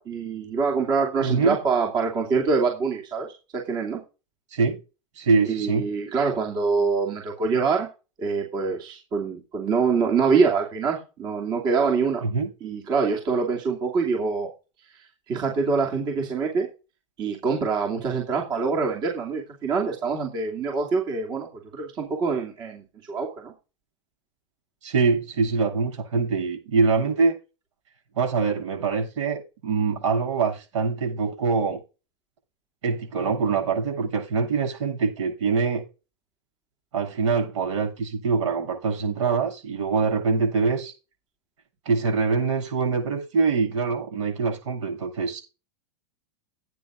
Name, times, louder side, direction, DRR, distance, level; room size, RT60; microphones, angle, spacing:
voice 1, 0.0-3.3 3.5-4.0 5.5-7.9 8.2-12.2 12.6-14.5 15.3-16.7 17.2-21.5 21.7-23.5, right 5 dB, 25° right, 2.7 m, -25 dB
voice 2, 1.2-1.6 4.5-4.8 5.2-5.8 12.2-12.5 24.8-27.4 28.2-31.8 32.8-35.8 36.9-40.9 41.8-45.4, right 4 dB, 75° right, 7.8 m, -24 dB
18.0 x 9.4 x 2.6 m
supercardioid pair, 155°, 16 cm